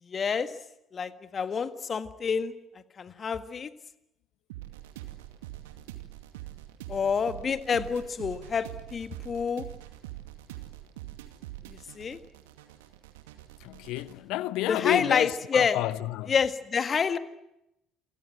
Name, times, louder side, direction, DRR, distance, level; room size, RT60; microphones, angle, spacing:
voice 1, 0.1-0.5 0.9-2.5 3.0-3.7 6.9-9.6 11.7-12.2 14.7-15.8 16.3-17.2, left 6 dB, 35° left, 1.7 m, -28 dB
sound 1, 4.5-14.1, right 15 dB, 70° right, 2.3 m, -44 dB
voice 2, 13.6-16.4, left 16 dB, 60° left, 1.0 m, -30 dB
28.0 x 24.5 x 7.7 m
figure-of-eight pair, 55°, 0 cm